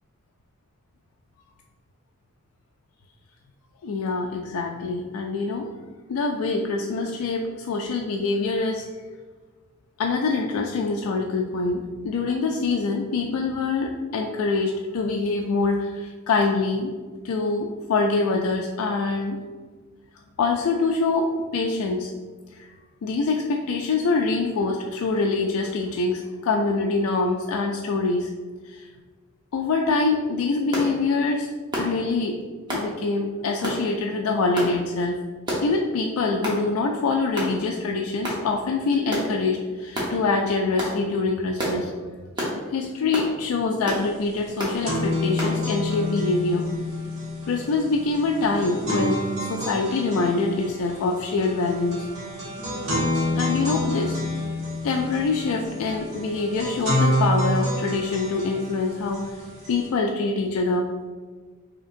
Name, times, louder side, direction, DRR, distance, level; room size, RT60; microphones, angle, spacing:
voice 1, 3.8-5.7 6.1-8.9 10.0-16.9 17.2-19.4 20.4-22.1 22.5-22.7 23.0-28.3 28.6-28.9 29.5-31.5 31.8-32.3 32.7-35.2 35.6-41.9 42.7-46.7 47.5-52.0 53.3-54.2 54.8-59.3 59.7-61.1, left 3 dB, 85° left, 1 dB, 0.3 m, -25 dB
sound 1, 30.7-30.9 31.7-31.9 32.7-32.9 33.6-33.8 34.5-34.7 35.5-35.7 36.4-36.6 37.3-37.5 38.2-38.4 39.1-39.3 39.9-40.1 40.8-41.0 41.6-41.8 42.4-42.6 43.1-43.3 43.8-44.0 44.6-44.8 45.4-45.5, equal, 20° right, 0.9 m, -28 dB
sound 2, 44.3-59.9, left 1 dB, 80° right, 1.5 m, -28 dB
4.9 x 2.8 x 2.6 m, 1.4 s
head